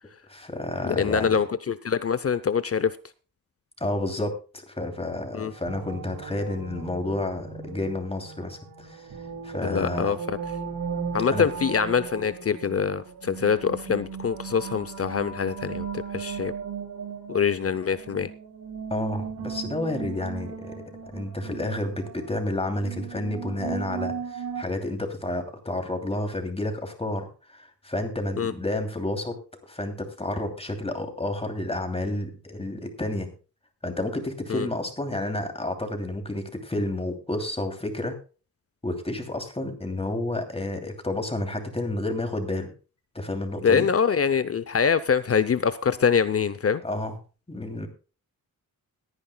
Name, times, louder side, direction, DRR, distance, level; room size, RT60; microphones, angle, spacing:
voice 1, 0.3-1.4 3.8-9.1 9.4-10.1 11.3-11.5 18.9-20.7 21.1-29.4 29.7-33.3 33.8-38.2 38.8-42.7 43.1-43.9 46.8-47.2 47.5-47.9, left 1 dB, 15° left, 2.8 m, -30 dB
voice 2, 0.8-2.9 5.3-5.5 9.6-10.4 11.1-16.5 17.3-18.3 28.4-28.5 34.5-34.7 43.6-46.8, left 6 dB, 40° left, 0.6 m, -24 dB
sound 1, 5.4-24.6, right 6 dB, 70° right, 2.8 m, -37 dB
21.5 x 9.8 x 2.3 m
wide cardioid pair, 110°, 35 cm